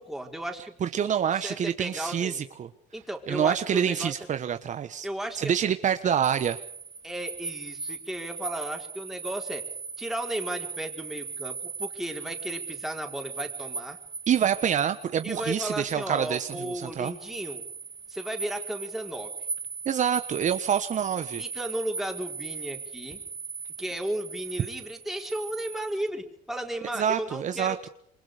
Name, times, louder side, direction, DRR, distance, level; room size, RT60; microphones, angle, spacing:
voice 1, 0.0-2.4 2.9-4.1 5.0-5.5 7.0-9.7 10.0-14.0 15.2-17.7 18.1-19.3 21.4-23.2 23.8-27.9, right 1 dB, ahead, 2 dB, 4.7 m, -35 dB
voice 2, 0.8-2.7 3.3-5.1 5.3-6.6 14.3-17.1 19.8-21.4 26.9-27.7, right 8 dB, 45° right, 9 dB, 1.3 m, -26 dB
sound 1, 6.2-26.1, right 4 dB, 20° right, 2.4 m, -39 dB
27.5 x 24.0 x 5.1 m, 0.64 s
cardioid pair, 110°, 17 cm